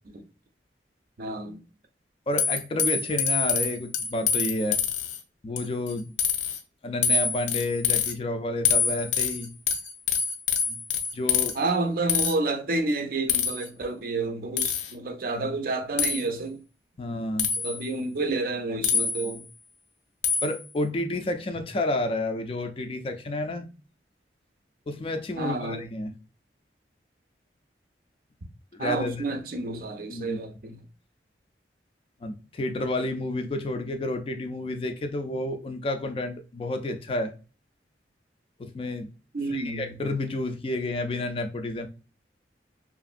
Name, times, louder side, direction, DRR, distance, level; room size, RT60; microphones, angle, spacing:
voice 1, 1.2-1.6 11.5-16.6 17.6-19.4 25.4-25.9 28.8-30.8 39.3-40.0, right 3 dB, 50° right, 0.5 m, -30 dB
voice 2, 2.3-4.8 5.4-6.1 6.8-9.5 10.7-10.8 11.1-11.5 15.3-15.5 17.0-17.5 20.4-23.7 24.9-26.1 28.7-29.2 30.1-30.4 32.2-37.3 38.6-39.1 39.5-41.9, left 2 dB, 30° left, 0.3 m, -30 dB
sound 1, 2.4-5.2 5.6-5.9 6.2-6.6 7.0-8.1 8.7-11.5 12.1-12.3 13.3-13.7 14.6-14.9 16.0-16.2 17.4-17.8 18.8-19.4 20.2-20.6, left 6 dB, 90° left, 0.5 m, -26 dB
3.0 x 2.5 x 2.4 m
head